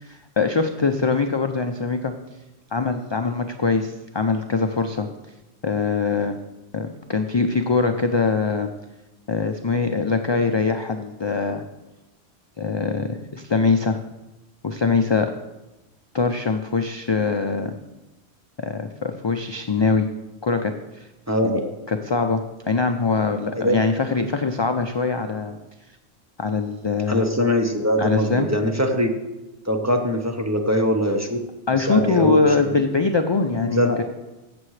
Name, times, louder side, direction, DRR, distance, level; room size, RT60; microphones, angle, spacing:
voice 1, 0.0-2.1 2.7-5.1 5.6-6.4 6.7-8.7 9.3-11.6 12.6-14.0 14.6-15.3 16.1-17.7 18.6-20.1 20.4-21.1 21.4-21.6 21.9-25.6 26.4-27.2 28.0-28.5 31.7-34.0, left 4 dB, 45° left, 6 dB, 0.3 m, -22 dB
voice 2, 21.3-21.7 23.5-23.8 27.1-29.2 29.6-31.4 31.7-32.7 33.6-34.0, equal, 15° right, 3 dB, 0.8 m, -22 dB
14.5 x 7.7 x 3.2 m, 1.0 s
omnidirectional pair, 1.1 m